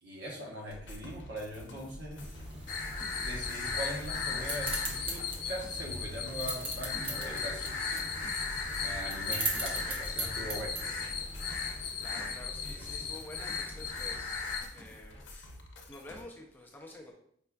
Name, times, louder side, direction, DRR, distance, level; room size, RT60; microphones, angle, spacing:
voice 1, 0.0-2.2 3.1-8.0 8.8-10.8 12.8-13.1, equal, 70° right, -2 dB, 1.0 m, -41 dB
sound 1, 0.7-16.2, left 1 dB, 90° left, 0.6 m, -48 dB
sound 2, 2.2-11.8, right 2 dB, 30° right, 0.7 m, -40 dB
sound 3, 2.7-14.6, left 5 dB, 50° left, 0.7 m, -36 dB
voice 2, 12.0-14.4 14.7-15.5 15.8-17.1, left 1 dB, 10° left, 0 dB, 0.4 m, -49 dB
5.1 x 2.4 x 2.2 m, 0.67 s
head